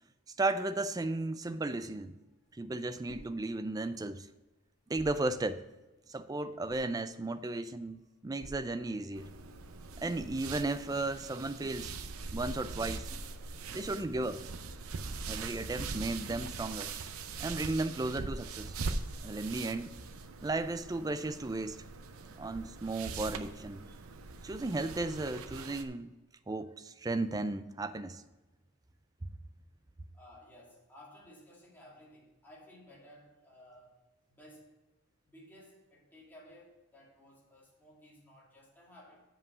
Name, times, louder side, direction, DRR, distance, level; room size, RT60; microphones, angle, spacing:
voice 1, 0.4-2.2 2.6-4.3 4.9-5.6 6.1-9.3 10.0-12.0 12.3-13.1 13.7-14.5 15.3-16.9 17.4-18.8 19.2-19.9 20.4-21.8 22.4-23.9 24.4-26.1 26.5-28.2, right 2 dB, 15° right, 0.3 m, -35 dB
sound 1, 2.4-17.3, equal, 35° left, 1.3 m, -57 dB
sound 2, 9.2-25.8, right 4 dB, 80° right, 0.6 m, -42 dB
voice 2, 13.4-13.7 30.1-33.9 34.3-34.7 35.2-39.2, left 1 dB, 10° left, 2.4 m, -56 dB
7.4 x 5.4 x 6.9 m
head